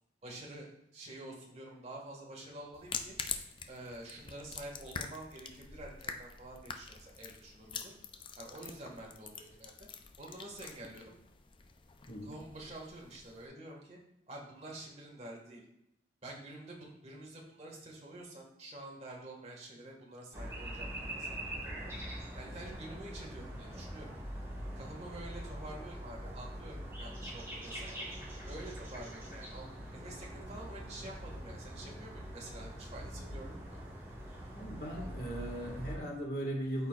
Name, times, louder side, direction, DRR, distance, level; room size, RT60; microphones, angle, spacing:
voice 1, 0.2-3.1 3.7-7.9 8.4-9.7 10.2-11.1 12.2-14.0 14.3-15.6 16.2-21.9 22.3-24.2 24.7-28.0 28.4-29.6 29.9-33.8, right 1 dB, 40° right, -2 dB, 1.8 m, -48 dB
sound 1, 2.7-13.5, left 6 dB, 30° left, 0.5 m, -45 dB
sound 2, 20.3-36.0, equal, 15° right, 1.7 m, -43 dB
voice 2, 34.5-36.9, right 1 dB, 55° left, -1 dB, 1.8 m, -38 dB
13.0 x 4.3 x 2.4 m, 0.83 s
head